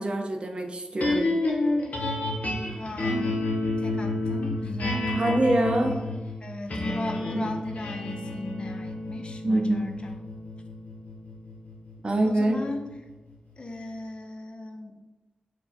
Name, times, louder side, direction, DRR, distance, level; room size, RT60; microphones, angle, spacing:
voice 1, 0.0-1.3 5.1-6.0 7.3-7.5 9.4-9.8 12.0-12.6, right 1 dB, 40° right, 3 dB, 0.5 m, -25 dB
sound 1, 1.0-13.3, left 2 dB, 65° left, 0.9 m, -30 dB
voice 2, 2.7-3.4 3.8-5.1 5.8-6.1 6.4-10.1 12.2-13.0 13.6-15.0, left 2 dB, 40° left, 5 dB, 0.4 m, -37 dB
4.7 x 2.2 x 4.1 m, 1.2 s
wide cardioid pair, 120°, 3 cm